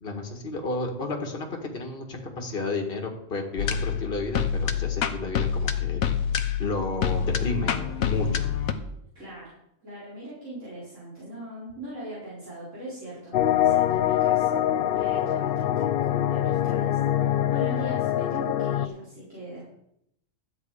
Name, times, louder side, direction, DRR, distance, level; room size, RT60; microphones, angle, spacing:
voice 1, 0.0-1.5 1.7-6.0 6.6-8.5, left 3 dB, 40° left, 2 dB, 2.0 m, -32 dB
sound 1, 3.6-8.7, left 8 dB, 80° left, 1.3 m, -27 dB
voice 2, 9.1-9.6 9.8-19.7, right 1 dB, 65° right, -10 dB, 4.8 m, -40 dB
sound 2, 13.3-18.9, left 11 dB, 60° left, 0.6 m, -24 dB
12.5 x 8.9 x 4.9 m, 0.76 s
omnidirectional pair, 1.4 m